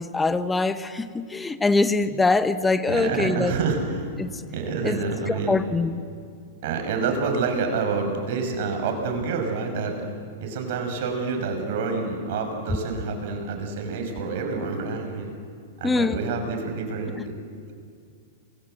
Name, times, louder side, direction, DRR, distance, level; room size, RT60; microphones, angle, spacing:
voice 1, 0.0-3.5 4.2-4.3 4.8-5.0 5.3-6.0 15.8-16.2, left 3 dB, 10° left, 11 dB, 1.3 m, -23 dB
voice 2, 2.8-4.0 4.5-5.6 6.6-10.1 10.4-15.3 15.8-17.4, right 4 dB, 60° right, 4 dB, 6.2 m, -28 dB
28.0 x 21.5 x 7.9 m, 2.2 s
hypercardioid pair, 110°, 0 cm